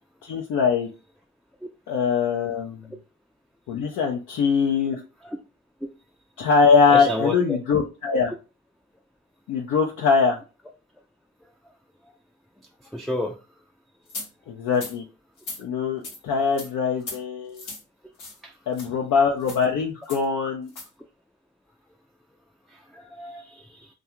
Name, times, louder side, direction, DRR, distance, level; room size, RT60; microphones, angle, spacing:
voice 1, 0.2-0.9 1.9-2.8 3.7-5.0 6.4-8.3 9.5-10.4 14.5-15.0 15.6-17.7 18.7-20.7, left 5 dB, 70° left, 0.5 m, -22 dB
voice 2, 6.9-7.6 12.9-13.3 18.4-18.5 22.9-23.9, left 2 dB, ahead, 0.4 m, -30 dB
sound 1, 14.1-14.3 14.7-15.0 15.4-15.6 16.0-16.2 16.6-16.7 17.0-17.2 17.5-17.8 18.2-18.4 18.7-18.9 19.4-19.6 20.1-20.2 20.7-20.9, left 3 dB, 85° left, 0.9 m, -37 dB
2.4 x 2.3 x 2.9 m
hypercardioid pair, 45°, 31 cm